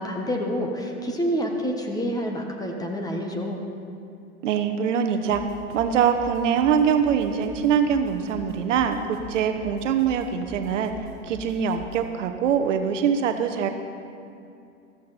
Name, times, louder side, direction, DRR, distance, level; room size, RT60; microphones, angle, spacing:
voice 1, 0.0-3.6, equal, 10° left, 2 dB, 1.3 m, -28 dB
voice 2, 4.4-5.4 5.7-10.9 11.2-13.7, right 7 dB, 60° right, 6 dB, 1.1 m, -23 dB
sound 1, 5.3-12.1, right 2 dB, 30° right, 1.7 m, -44 dB
14.0 x 14.0 x 4.2 m, 2.6 s
hypercardioid pair, 105°, 43 cm